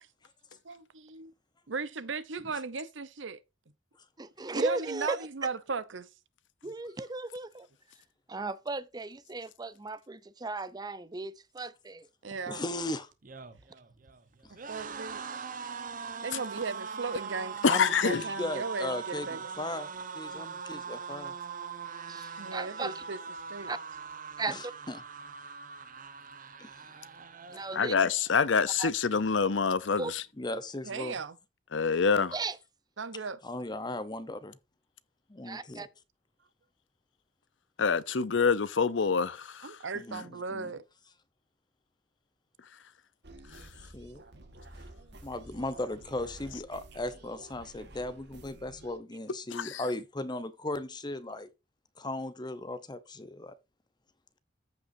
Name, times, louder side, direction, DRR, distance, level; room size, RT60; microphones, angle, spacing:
voice 1, 0.6-1.3 1.7-3.4 4.5-6.1 6.6-6.7 12.2-12.6 14.7-15.5 16.2-19.4 22.4-23.2 23.5-23.7 30.8-31.4 33.0-33.4 39.6-40.8, right 4 dB, 85° right, 0.9 m, -37 dB
voice 2, 4.2-5.2 6.6-7.7 8.3-12.1 22.1-23.0 23.7-23.8 24.4-24.7 27.5-27.9 28.8-28.9 30.0-30.1 32.3-32.6 35.4-35.9, right 3 dB, 20° right, 0.6 m, -36 dB
voice 3, 12.5-13.1 14.4-14.5 17.7-19.3 19.6-19.9 20.1-21.3 24.5-25.0 26.6-26.7 30.4-31.1 33.4-34.6 35.3-35.9 39.9-40.7 43.9-44.2 45.2-51.5 52.0-53.5, left 2 dB, 25° left, 0.9 m, -37 dB
sound 1, 13.1-28.3 28.7-28.9 29.1-29.9, right 5 dB, 45° right, 1.0 m, -42 dB
voice 4, 17.6-18.2 27.7-30.2 31.7-32.4 37.8-39.8 43.5-43.6 49.5-49.8, left 5 dB, 80° left, 0.7 m, -26 dB
sound 2, 43.2-49.0, right 1 dB, 65° right, 1.6 m, -51 dB
14.5 x 5.4 x 2.7 m
head